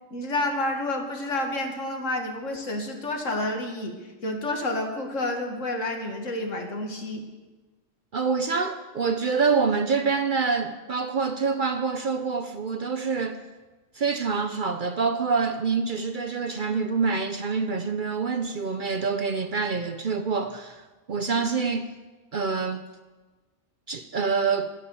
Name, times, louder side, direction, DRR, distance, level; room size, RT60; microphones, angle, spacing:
voice 1, 0.1-7.2, left 2 dB, 75° left, 2.1 m, -29 dB
voice 2, 8.1-13.4 13.9-21.9 22.3-22.9 23.9-24.7, right 5 dB, 50° right, 0.7 m, -26 dB
12.0 x 10.5 x 7.0 m
omnidirectional pair, 1.3 m